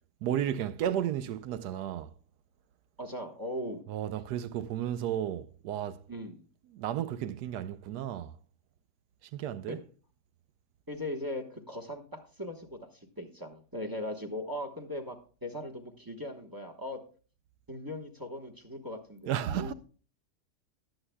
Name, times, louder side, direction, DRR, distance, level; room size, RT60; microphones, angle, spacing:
voice 1, 0.2-2.1 3.9-6.0 6.7-8.4 9.3-9.8 19.3-19.7, right 10 dB, 85° right, 1.2 m, -33 dB
voice 2, 3.0-3.8 6.1-6.5 9.7-9.8 10.9-17.0 17.7-19.7, left 1 dB, 15° right, 1.0 m, -39 dB
19.5 x 7.7 x 2.2 m
omnidirectional pair, 1.7 m